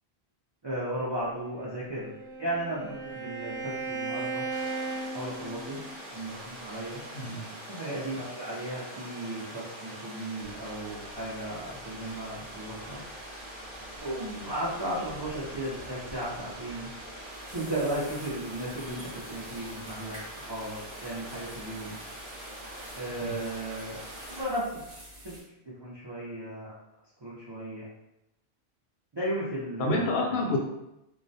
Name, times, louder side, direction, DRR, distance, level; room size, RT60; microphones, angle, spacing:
voice 1, 0.6-2.1 2.4-4.4 5.1-5.8 6.1-7.0 7.7-13.0 14.0-16.9 17.5-22.0 22.9-24.0 24.3-24.7 25.2-25.4 25.6-26.7 27.2-27.9 29.1-30.5, right 1 dB, 45° right, -8 dB, 0.3 m, -35 dB
Bowed string instrument, 1.5-6.0, right 3 dB, 90° right, 0.9 m, -36 dB
Water, 4.5-24.4, right 1 dB, 60° right, 0.8 m, -44 dB
voice 2, 7.1-7.5 23.2-23.4 29.8-30.6, left 2 dB, 80° left, -1 dB, 0.8 m, -28 dB
sound 1, 10.4-25.4, equal, 5° right, 0.8 m, -50 dB
2.3 x 2.1 x 2.6 m, 0.87 s
omnidirectional pair, 1.1 m